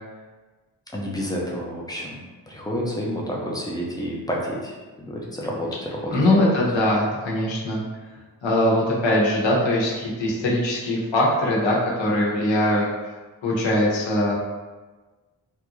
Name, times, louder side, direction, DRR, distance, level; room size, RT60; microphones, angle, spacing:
voice 1, 0.9-2.2 2.5-6.1, equal, 10° left, -3 dB, 0.5 m, -29 dB
voice 2, 6.1-7.8 8.4-12.8 13.4-14.3, left 1 dB, 85° left, -5 dB, 1.0 m, -21 dB
3.4 x 2.5 x 2.9 m, 1.3 s
wide cardioid pair, 160°, 44 cm